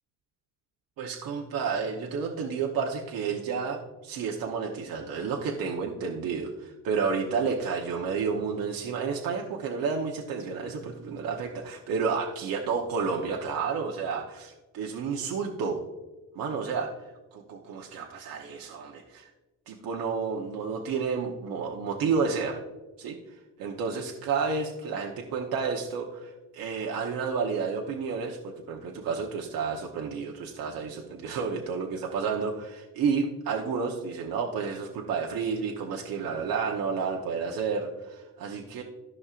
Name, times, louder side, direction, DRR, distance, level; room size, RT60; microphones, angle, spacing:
voice 1, 1.0-15.8 16.3-19.3 19.7-22.6 23.0-38.8, right 5 dB, 65° right, 0 dB, 1.1 m, -31 dB
14.5 x 5.4 x 2.5 m, 1.2 s
cardioid pair, 90°, 37 cm